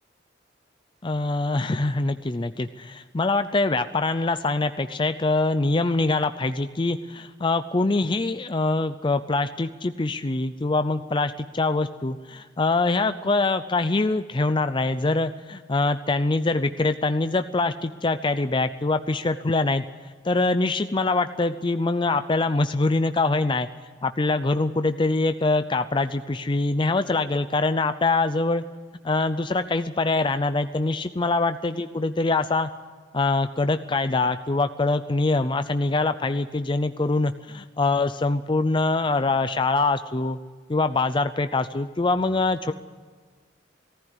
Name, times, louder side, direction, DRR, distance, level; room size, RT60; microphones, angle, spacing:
voice 1, 1.0-19.8 20.2-23.7 24.0-28.6 29.0-32.7 33.1-40.4 40.7-42.7, left 3 dB, 25° left, 10 dB, 0.5 m, -24 dB
19.0 x 14.5 x 9.8 m, 1.5 s
head